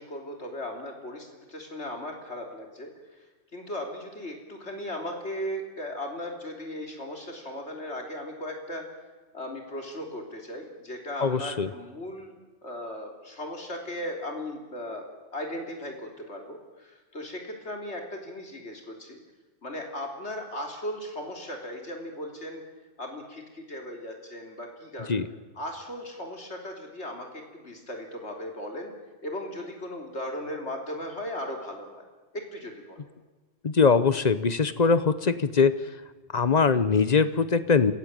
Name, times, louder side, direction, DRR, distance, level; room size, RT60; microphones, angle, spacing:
voice 1, 0.0-2.9 3.2-3.3 3.5-8.9 9.3-12.3 12.6-19.2 19.6-22.6 23.0-25.2 25.6-28.9 29.2-32.0 32.3-33.0, left 1 dB, 70° left, 3 dB, 3.8 m, -37 dB
voice 2, 11.2-11.7 25.1-25.3 33.6-35.8 36.3-37.9, left 5 dB, 40° left, 14 dB, 1.0 m, -22 dB
27.0 x 16.0 x 9.0 m, 1.2 s
omnidirectional pair, 1.2 m